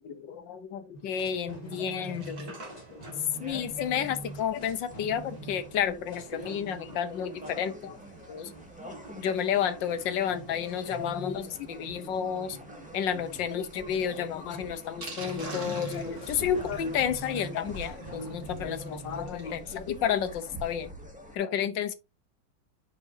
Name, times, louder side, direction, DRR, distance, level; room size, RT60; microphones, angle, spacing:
voice 1, 0.0-2.6 3.4-8.0 8.3-8.5 9.1-12.6 12.9-20.9 21.3-21.9, left 8 dB, 75° left, 1.6 m, -31 dB
sound 1, 0.9-19.3, right 2 dB, 20° left, 2.0 m, -46 dB
Sink (filling or washing), 1.5-19.6 19.9-20.0 20.2-20.3 20.7-20.8, right 1 dB, 50° right, 2.8 m, -48 dB
sound 2, 3.3-21.4, right 1 dB, 5° right, 1.8 m, -46 dB
8.1 x 6.0 x 2.7 m
omnidirectional pair, 2.1 m